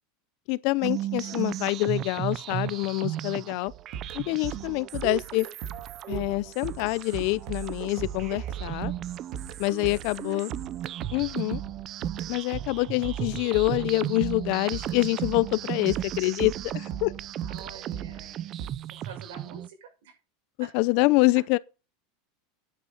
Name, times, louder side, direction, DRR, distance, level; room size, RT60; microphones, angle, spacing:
voice 1, 0.5-3.7 4.1-5.5 6.1-8.9 9.6-10.5 11.1-11.6 12.3-17.1 20.6-21.6, left 22 dB, 60° left, 0.6 m, -26 dB
sound 1, 0.8-19.7, right 12 dB, 40° right, 0.6 m, -35 dB
voice 2, 1.2-1.5 9.6-10.5 12.6-13.1 17.5-18.6 18.9-20.2 20.6-20.7 21.3-21.4, right 5 dB, 80° right, 5.9 m, -48 dB
sound 2, 3.7-15.6 15.9-18.7, right 9 dB, 55° right, 2.4 m, -39 dB
9.8 x 8.2 x 5.2 m
supercardioid pair, 135°, 0 cm